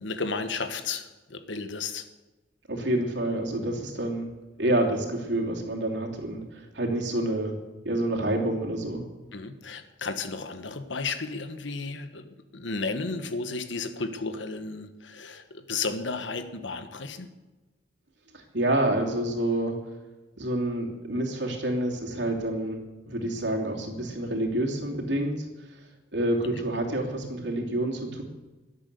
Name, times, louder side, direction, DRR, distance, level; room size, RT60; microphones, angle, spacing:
voice 1, 0.0-2.1 9.3-17.3, left 4 dB, 85° left, 9 dB, 1.3 m, -33 dB
voice 2, 2.7-4.3 4.6-7.5 7.8-9.0 18.3-19.7 20.4-22.8 23.1-25.5 26.1-28.2, right 1 dB, 75° right, 1 dB, 2.9 m, -28 dB
22.0 x 8.3 x 6.8 m, 1.2 s
head